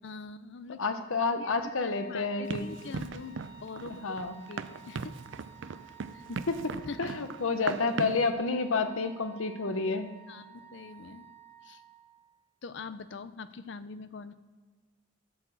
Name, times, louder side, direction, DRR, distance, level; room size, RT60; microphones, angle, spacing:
voice 1, 0.0-0.8 1.4-1.5 1.8-4.2 4.5-5.2 6.8-7.1 10.3-11.3 11.6-11.8 12.6-14.4, left 4 dB, 55° left, 13 dB, 0.5 m, -43 dB
voice 2, 0.8-2.7 3.9-4.4 6.3-6.7 7.0-10.1, left 4 dB, 75° left, 8 dB, 0.9 m, -30 dB
Wind instrument woodwind instrument, 1.5-12.3, right 4 dB, 30° left, 1.4 m, -53 dB
Run, 2.5-8.3, right 5 dB, 60° right, 0.4 m, -39 dB
12.0 x 4.5 x 7.3 m, 1.4 s
head